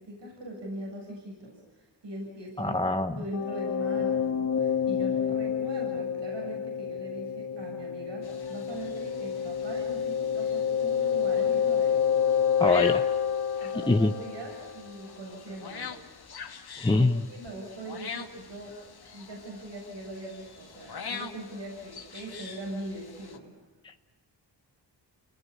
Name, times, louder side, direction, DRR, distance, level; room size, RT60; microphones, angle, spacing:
voice 1, 0.0-12.1 13.6-16.0 16.5-18.8 19.1-23.5, right 1 dB, 75° right, -1 dB, 7.7 m, -41 dB
voice 2, 2.6-3.2 12.6-13.0 13.9-14.1 16.8-17.2 23.8-23.9, left 2 dB, 10° left, 7 dB, 0.8 m, -24 dB
sound 1, 3.3-14.9, left 8 dB, 40° left, 2.2 m, -28 dB
sound 2, 8.2-23.4, left 6 dB, 55° left, 2.3 m, -45 dB
29.5 x 19.0 x 9.7 m, 1.2 s
cardioid pair, 80°, 44 cm